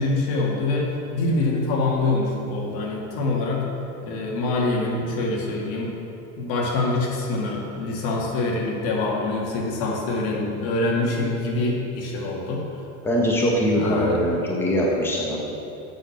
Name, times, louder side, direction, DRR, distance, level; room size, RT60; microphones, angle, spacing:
voice 1, 0.0-3.7 4.0-6.0 6.4-12.6 13.7-14.2, left 2 dB, 65° left, -1 dB, 2.1 m, -25 dB
voice 2, 13.0-15.5, equal, 5° left, -4 dB, 1.4 m, -22 dB
7.8 x 6.3 x 7.1 m, 2.7 s
supercardioid pair, 135°, 41 cm